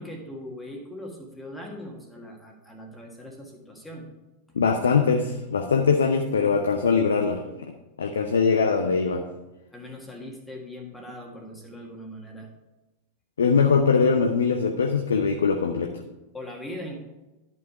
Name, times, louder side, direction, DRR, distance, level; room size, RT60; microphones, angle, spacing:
voice 1, 0.0-4.1 9.7-12.5 16.3-17.0, left 1 dB, 10° left, 0 dB, 1.6 m, -40 dB
voice 2, 4.5-7.4 8.0-9.2 13.4-15.9, left 5 dB, 70° left, 5 dB, 0.6 m, -22 dB
11.0 x 5.5 x 4.7 m, 1.0 s
figure-of-eight pair, 90°, 0 cm